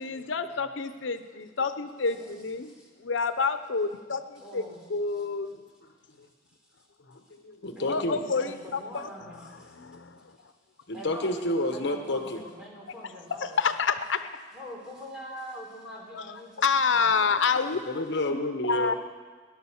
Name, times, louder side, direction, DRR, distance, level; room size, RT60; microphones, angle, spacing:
voice 1, 0.0-2.7 3.0-4.6 4.9-5.6 7.9-9.1 9.8-10.2 13.4-14.2 16.1-16.2 16.6-17.8 18.7-18.9, left 5 dB, 90° left, 10 dB, 0.7 m, -28 dB
voice 2, 2.1-2.9 4.4-5.3 6.5-6.9 7.8-9.8 10.4-10.5 10.9-13.7 14.5-17.4, equal, 5° right, -3 dB, 4.0 m, -45 dB
voice 3, 7.1-8.2 9.9-10.0 10.9-12.4 17.9-18.9, left 1 dB, 65° left, 5 dB, 1.1 m, -30 dB
18.5 x 11.0 x 7.1 m, 1.5 s
head